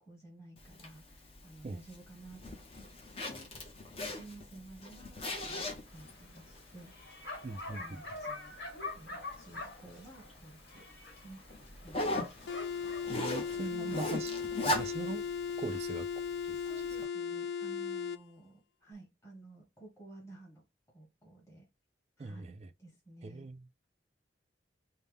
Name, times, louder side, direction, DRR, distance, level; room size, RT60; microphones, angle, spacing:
voice 1, 0.0-2.9 3.2-3.5 4.0-6.9 7.5-10.8 11.2-11.4 11.8-12.3 13.7-14.1 16.5-20.6 20.9-21.7 22.2-23.5, right 2 dB, 15° left, 1.4 m, -53 dB
Zipper (clothing), 0.6-17.0, left 1 dB, 30° left, 0.7 m, -41 dB
Bark, 5.9-13.0, left 3 dB, 60° left, 1.5 m, -45 dB
voice 2, 7.4-8.0 13.1-14.3 14.6-15.3 15.6-16.1 16.5-16.6 22.2-22.7 23.2-23.7, right 3 dB, 35° right, 0.3 m, -40 dB
sound 1, 12.5-18.2, left 6 dB, 80° left, 0.4 m, -37 dB
5.4 x 2.1 x 3.4 m
head